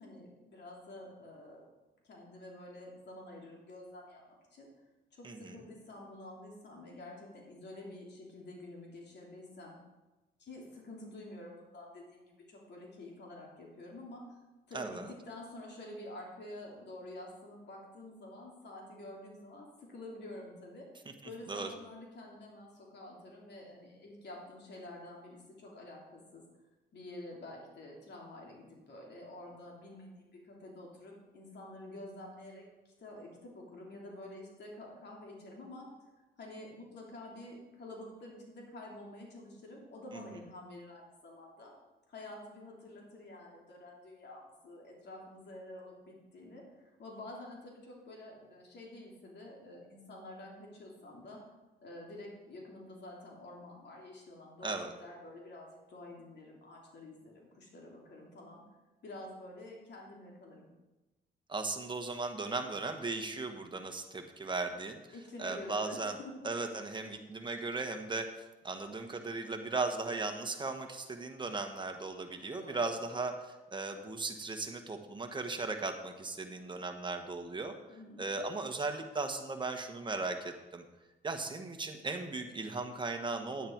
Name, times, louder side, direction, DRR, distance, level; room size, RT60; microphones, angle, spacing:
voice 1, 0.0-1.7 2.0-4.7 5.1-9.8 10.4-14.4 14.7-20.9 21.2-26.4 26.9-35.9 36.4-41.7 42.1-51.4 51.8-58.7 59.0-60.7 65.1-66.4 72.6-72.9 77.9-78.3, left 1 dB, 60° left, -1 dB, 2.9 m, -49 dB
voice 2, 5.2-5.6 14.7-15.1 21.5-21.7 40.1-40.2 54.6-54.9 61.5-65.0 65.4-66.1 66.4-68.3 68.6-77.7 78.2-80.8 81.2-83.7, right 3 dB, 25° right, 4 dB, 1.4 m, -37 dB
9.5 x 9.5 x 4.6 m, 1.1 s
cardioid pair, 90°, 20 cm